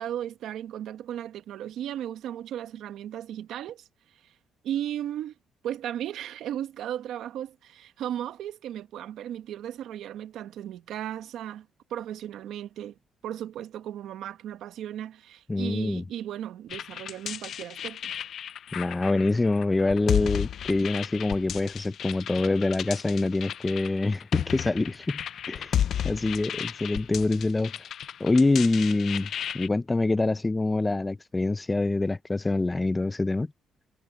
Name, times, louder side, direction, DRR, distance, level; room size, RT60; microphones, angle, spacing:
voice 1, 0.0-3.9 4.2-4.3 4.6-5.3 5.6-12.9 13.2-18.1, right 11 dB, 80° right, 1.3 m, -36 dB
voice 2, 15.5-16.0 18.7-25.2 25.5-25.8 26.0-27.7 28.2-29.3 29.5-33.5, left 2 dB, 20° left, 0.7 m, -25 dB
sound 1, 16.7-29.7, left 9 dB, 65° left, 0.4 m, -33 dB
cardioid pair, 90°, 0 cm